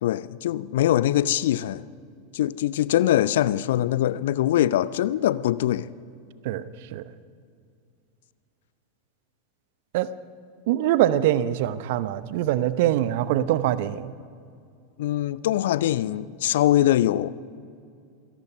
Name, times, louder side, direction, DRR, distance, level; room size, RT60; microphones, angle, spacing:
voice 1, 0.0-1.8 2.3-5.9 15.0-17.3, left 13 dB, 60° left, 0.6 m, -23 dB
voice 2, 10.7-14.1, right 12 dB, 55° right, 0.8 m, -23 dB
27.0 x 17.5 x 5.5 m
figure-of-eight pair, 85°, 0 cm